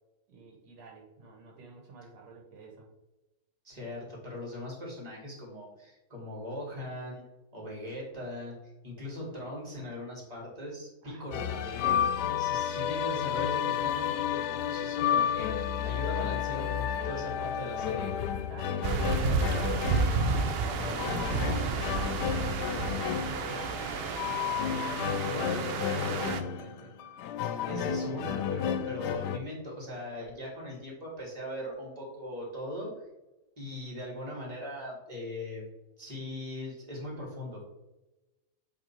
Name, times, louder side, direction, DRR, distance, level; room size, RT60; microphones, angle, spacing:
voice 1, 0.3-2.9 9.0-9.3 11.0-12.7 18.5-22.0 22.8-24.1 25.0-26.9, right 3 dB, 80° right, 0 dB, 1.9 m, -48 dB
voice 2, 3.6-7.2 7.5-8.6 8.8-18.3 25.3-25.6 27.7-32.9 33.6-35.7 36.0-37.6, left 1 dB, 25° right, -3 dB, 2.4 m, -40 dB
sound 1, 11.3-29.4, left 9 dB, 90° left, 1.2 m, -32 dB
sound 2, 18.8-26.4, right 4 dB, 65° right, 0.6 m, -31 dB
7.9 x 3.6 x 4.4 m, 1.0 s
omnidirectional pair, 1.7 m